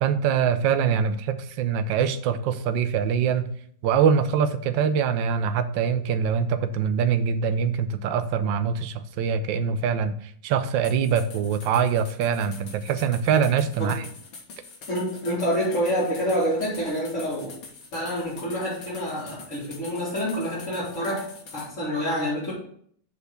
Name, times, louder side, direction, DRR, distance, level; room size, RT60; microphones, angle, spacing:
voice 1, 0.0-3.5 3.8-14.1, right 7 dB, 70° right, 10 dB, 1.3 m, -24 dB
sound 1, 10.8-21.7, left 4 dB, 70° left, 2.3 m, -45 dB
voice 2, 14.9-17.5 17.9-22.5, equal, 35° left, -11 dB, 4.0 m, -27 dB
7.0 x 4.6 x 6.7 m, 0.63 s
omnidirectional pair, 2.3 m